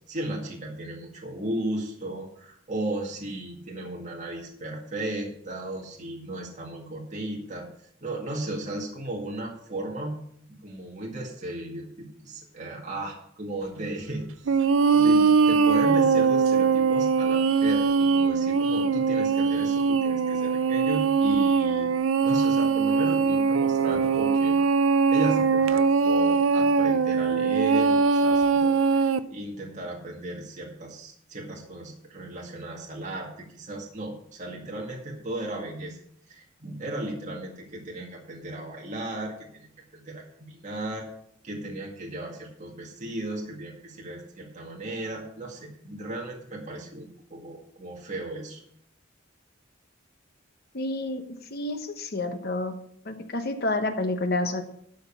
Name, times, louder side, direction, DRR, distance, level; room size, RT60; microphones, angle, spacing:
voice 1, 0.1-7.7 8.0-10.2 10.5-14.6 14.9-21.9 22.2-24.6 25.1-36.0 36.3-39.7 39.9-41.1 41.4-48.6, right 1 dB, 40° right, -2 dB, 2.1 m, -35 dB
sound 1, 14.5-29.2, right 5 dB, 85° right, 0.5 m, -21 dB
voice 2, 50.7-51.2 51.5-52.7 53.0-54.6, left 2 dB, 50° left, 7 dB, 1.1 m, -29 dB
12.5 x 5.2 x 7.0 m, 0.68 s
head